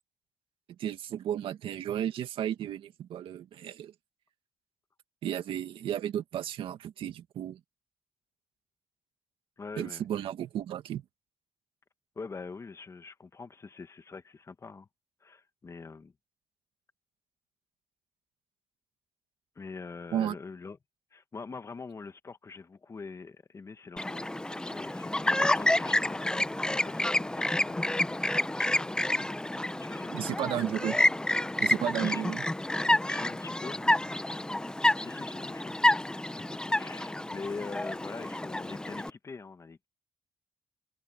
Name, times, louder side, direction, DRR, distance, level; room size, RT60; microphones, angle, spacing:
voice 1, 0.8-3.9 5.2-7.6 9.8-11.0 20.1-20.3 30.1-31.0 31.6-32.4, right 10 dB, 75° right, 2.1 m, -33 dB
voice 2, 9.6-10.0 12.1-14.9 15.2-16.1 19.5-20.8 21.1-24.3 24.6-28.9 29.5-30.6 31.9-32.3 33.1-34.1 35.0-35.7 36.1-39.9, left 4 dB, 35° left, 1.6 m, -44 dB
Chirp tweet, 24.0-39.1, left 1 dB, 10° left, 0.8 m, -29 dB
cardioid pair, 90°, 9 cm